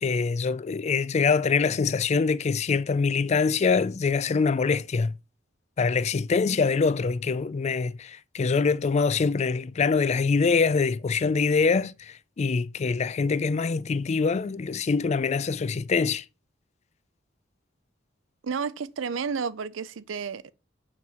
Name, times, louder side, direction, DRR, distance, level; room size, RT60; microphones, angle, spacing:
voice 1, 0.0-5.1 5.8-16.2, left 5 dB, 35° left, 0.3 m, -24 dB
voice 2, 18.4-20.5, right 5 dB, 85° right, 0.5 m, -31 dB
5.9 x 4.5 x 6.2 m
head